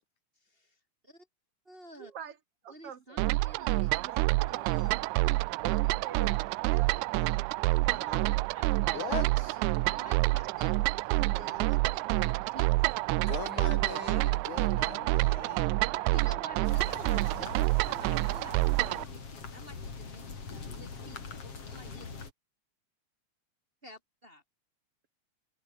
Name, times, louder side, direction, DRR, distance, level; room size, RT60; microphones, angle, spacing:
voice 1, 0.4-0.8 1.0-1.3 1.7-2.1 2.7-3.9 4.5-4.9 7.9-8.2 8.5-12.7 16.1-17.5 17.8-21.2 21.7-22.1 23.8-24.4, equal, 15° right, 5.4 m, -50 dB
voice 2, 1.9-2.4 2.6-3.2 3.9-4.7 5.6-8.4 10.0-10.5 17.4-17.5, right 8 dB, 55° right, 2.9 m, -47 dB
sound 1, 3.2-19.0, right 22 dB, 85° right, 1.9 m, -28 dB
voice 3, 8.9-9.6 13.2-15.9, left 7 dB, 80° left, 4.3 m, -40 dB
sound 2, 16.6-22.3, left 5 dB, 50° left, 4.7 m, -43 dB
omnidirectional pair, 3.4 m